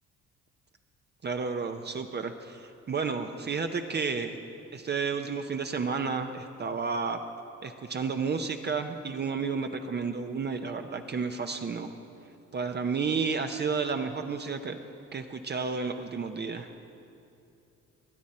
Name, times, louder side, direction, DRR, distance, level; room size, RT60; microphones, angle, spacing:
voice 1, 1.2-4.4 4.7-7.2 7.6-11.9 12.5-14.8 15.1-16.7, right 5 dB, 35° right, 6 dB, 0.6 m, -31 dB
20.5 x 9.2 x 4.3 m, 2.7 s
cardioid pair, 90°, 30 cm